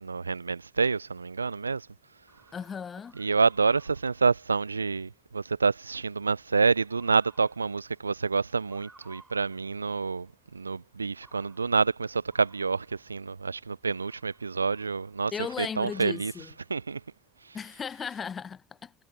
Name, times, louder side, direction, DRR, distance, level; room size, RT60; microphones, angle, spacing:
voice 1, 0.0-1.9 3.2-15.3 15.6-16.3 16.7-17.0, right 4 dB, 85° right, 0.5 m, -28 dB
Motor vehicle (road) / Siren, 2.3-17.8, right 2 dB, 15° right, 7.7 m, -62 dB
voice 2, 2.5-3.2 15.3-16.5 17.5-18.9, left 6 dB, 35° left, 0.7 m, -36 dB
figure-of-eight pair, 60°, 0 cm